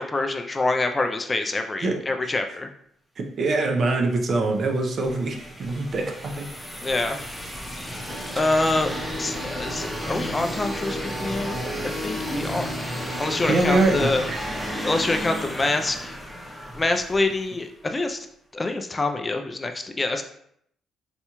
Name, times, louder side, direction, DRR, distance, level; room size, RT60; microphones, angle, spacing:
voice 1, 0.0-2.7 6.8-7.2 8.4-11.7 12.0-12.7 13.2-14.2 14.8-16.2 16.7-18.2 18.5-20.2, left 2 dB, 25° left, 6 dB, 0.3 m, -26 dB
voice 2, 3.2-6.5 13.5-14.1, right 2 dB, 55° right, 3 dB, 0.6 m, -23 dB
sound 1, 4.1-17.8, equal, ahead, 0.7 m, -35 dB
sound 2, 7.9-15.4, equal, 35° right, 1.3 m, -34 dB
4.2 x 2.3 x 2.9 m, 0.69 s
cardioid pair, 90°, 0 cm